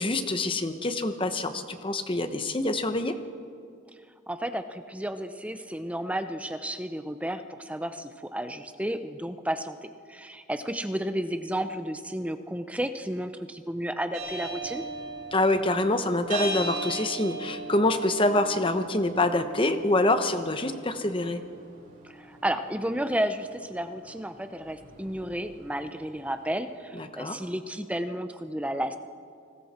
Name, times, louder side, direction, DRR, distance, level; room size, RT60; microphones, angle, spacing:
voice 1, 0.0-3.2 15.3-21.4 26.9-27.4, left 2 dB, 25° left, 8 dB, 1.1 m, -26 dB
voice 2, 4.3-14.8 22.1-29.0, right 1 dB, 5° right, 9 dB, 0.7 m, -32 dB
sound 1, 14.1-26.3, right 2 dB, 40° right, 6.6 m, -40 dB
30.0 x 20.0 x 4.4 m, 2.3 s
head